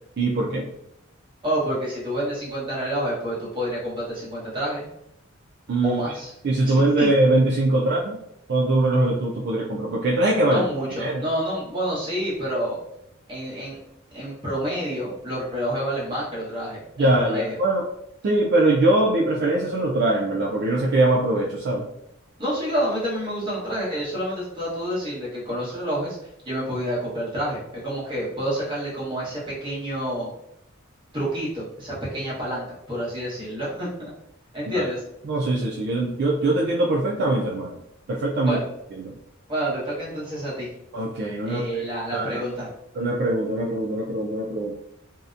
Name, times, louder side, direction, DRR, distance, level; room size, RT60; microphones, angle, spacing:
voice 1, 0.2-0.7 5.7-6.0 6.4-8.2 8.5-10.6 11.0-11.2 17.0-17.8 18.2-21.9 34.7-34.9 35.2-37.8 38.1-38.6 39.0-39.1 40.9-41.6 42.1-42.4 43.0-44.7, right 2 dB, 50° right, -3 dB, 0.3 m, -22 dB
voice 2, 1.4-4.9 5.8-6.3 6.6-7.1 10.5-12.8 13.3-13.8 14.1-17.6 22.4-26.2 26.4-30.3 31.1-34.1 34.5-35.0 38.5-38.6 39.5-40.7 41.5-42.7, equal, 25° right, -7 dB, 0.9 m, -28 dB
2.7 x 2.1 x 2.4 m, 0.79 s
head